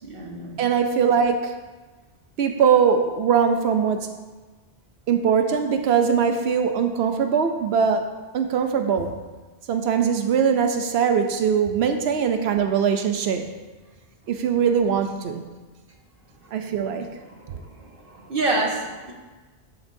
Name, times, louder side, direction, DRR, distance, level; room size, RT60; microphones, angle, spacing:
voice 1, 0.0-0.6 17.2-19.1, right 2 dB, 60° right, 0 dB, 1.5 m, -28 dB
voice 2, 0.6-1.5 2.4-4.1 5.1-8.1 8.3-9.1 9.7-13.5 14.3-15.4 16.5-17.1, right 7 dB, 80° right, 6 dB, 0.9 m, -21 dB
12.5 x 7.0 x 2.6 m, 1.3 s
omnidirectional pair, 1.1 m